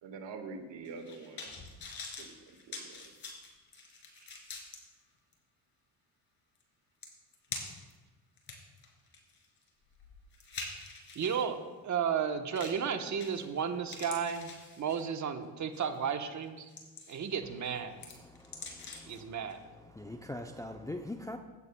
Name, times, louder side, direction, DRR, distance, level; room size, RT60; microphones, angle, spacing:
voice 1, 0.0-1.7 2.2-2.3 2.7-3.1, right 4 dB, 65° right, 1.7 m, -45 dB
sound 1, 0.8-4.8 5.3-5.4 6.6-6.7 7.0-7.9 8.4-11.5 12.6-12.9 13.2-13.6 13.9-15.2 15.7-16.0 16.4-17.3 17.6-19.2 19.5-19.6, left 4 dB, 50° left, 2.6 m, -45 dB
voice 2, 11.1-11.6 11.8-16.7 17.1-17.9 19.1-19.6, right 7 dB, 35° right, 1.1 m, -33 dB
voice 3, 18.2-19.4 19.9-21.4, left 1 dB, 5° left, 0.5 m, -43 dB
16.0 x 8.3 x 2.2 m
hypercardioid pair, 60°, 48 cm